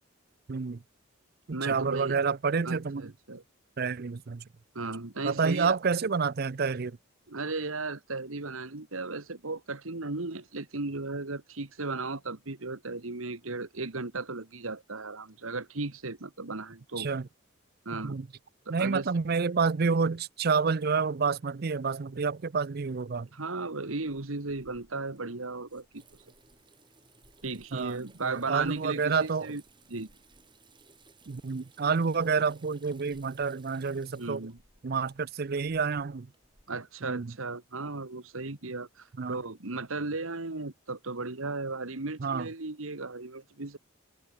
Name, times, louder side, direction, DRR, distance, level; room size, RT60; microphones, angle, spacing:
voice 1, 0.5-0.8 1.5-3.1 3.8-4.4 5.2-7.0 17.0-17.3 17.9-18.3 18.7-23.3 27.7-29.5 31.3-34.4 34.8-36.3 37.0-37.3 39.2-39.4 42.2-42.5, right 5 dB, 50° right, 0.5 m, -29 dB
voice 2, 1.5-2.2 2.6-3.4 4.8-5.8 7.3-17.1 17.9-18.2 18.7-19.1 23.3-25.9 27.4-29.6 29.9-30.1 34.2-34.6 36.7-43.8, right 3 dB, 80° right, 1.8 m, -36 dB
Water tap faucet / Sink (filling or washing), 24.0-36.7, right 3 dB, 25° right, 7.9 m, -61 dB
head